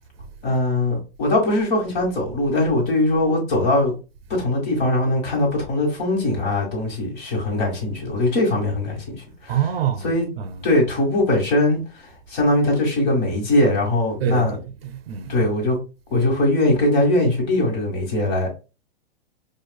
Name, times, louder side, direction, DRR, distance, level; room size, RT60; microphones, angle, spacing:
voice 1, 0.4-3.9 4.3-9.6 10.0-10.3 10.6-11.8 12.3-14.6 15.3-15.8 16.1-18.5, left 1 dB, 40° left, 1.6 m, -21 dB
voice 2, 9.5-10.1 10.4-10.6 14.2-15.5, right 9 dB, 65° right, 0.5 m, -26 dB
4.5 x 2.4 x 2.2 m
hypercardioid pair, 150°, 32 cm